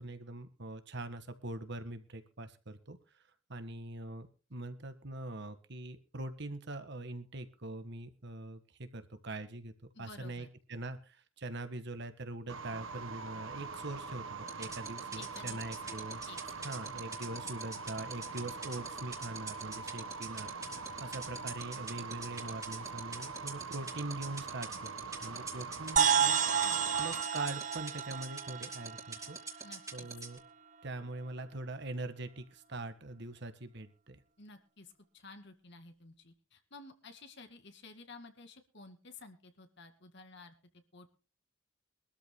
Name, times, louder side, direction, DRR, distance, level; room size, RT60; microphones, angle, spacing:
voice 1, 0.0-3.2 3.5-9.7 10.0-16.3 16.6-24.9 25.2-26.4 27.0-29.7 29.9-30.4 30.8-34.2, right 2 dB, 55° right, 10 dB, 1.6 m, -43 dB
voice 2, 9.9-10.5 15.2-15.6 15.9-16.0 16.3-17.0 26.6-26.9 29.6-30.1 34.4-41.1, left 3 dB, 55° left, 8 dB, 2.2 m, -53 dB
sound 1, 12.5-27.2, right 4 dB, 80° right, 1.3 m, -43 dB
sound 2, 14.5-30.4, right 4 dB, 15° right, 2.7 m, -41 dB
sound 3, 26.0-29.7, right 7 dB, 40° right, 0.8 m, -31 dB
23.5 x 13.0 x 2.2 m, 0.36 s
head